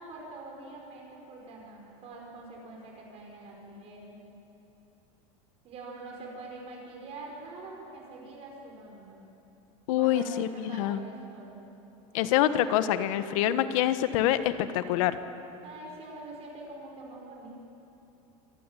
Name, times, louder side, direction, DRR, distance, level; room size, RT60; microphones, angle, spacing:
voice 1, 0.0-4.3 5.6-9.2 10.0-11.6 15.6-17.6, right 2 dB, 35° right, -1 dB, 5.3 m, -45 dB
voice 2, 9.9-11.0 12.1-15.2, left 12 dB, 70° left, 11 dB, 1.3 m, -26 dB
25.5 x 19.5 x 9.2 m, 3.0 s
supercardioid pair, 160°, 18 cm